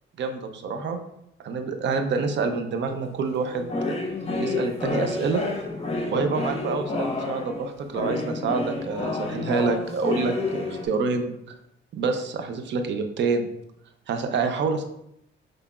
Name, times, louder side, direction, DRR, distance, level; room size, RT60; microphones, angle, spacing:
voice 1, 0.2-1.0 1.4-4.0 4.4-5.4 6.1-11.3 11.9-13.5 14.1-14.8, right 4 dB, 65° right, 7 dB, 0.6 m, -27 dB
sound 1, 2.6-2.9 3.4-10.9, left 3 dB, 30° left, 1.0 m, -30 dB
5.9 x 3.3 x 2.4 m, 0.78 s
cardioid pair, 90°, 20 cm